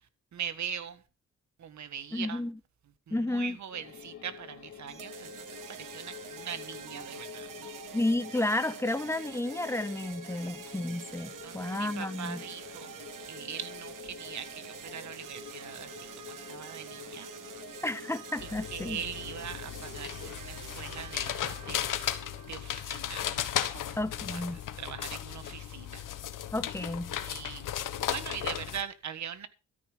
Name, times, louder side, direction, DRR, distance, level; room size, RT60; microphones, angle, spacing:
voice 1, 0.3-1.0 1.6-2.4 3.1-7.7 11.4-12.9 13.2-17.3 17.7-17.8 18.7-22.1 22.5-23.4 23.7-24.4 24.8-26.0 27.2-27.7 28.1-29.5, right 8 dB, 65° right, 1.6 m, -41 dB
voice 2, 2.1-2.6 3.1-3.6 7.9-12.4 17.8-19.0 24.0-24.6 26.5-27.1, left 1 dB, 10° left, 1.0 m, -32 dB
sound 1, 3.7-20.4, left 9 dB, 60° left, 2.8 m, -48 dB
sound 2, 4.9-22.8, right 9 dB, 85° right, 1.4 m, -47 dB
sound 3, 18.4-28.8, left 11 dB, 90° left, 1.4 m, -36 dB
13.5 x 9.4 x 5.2 m
cardioid pair, 105°, 31 cm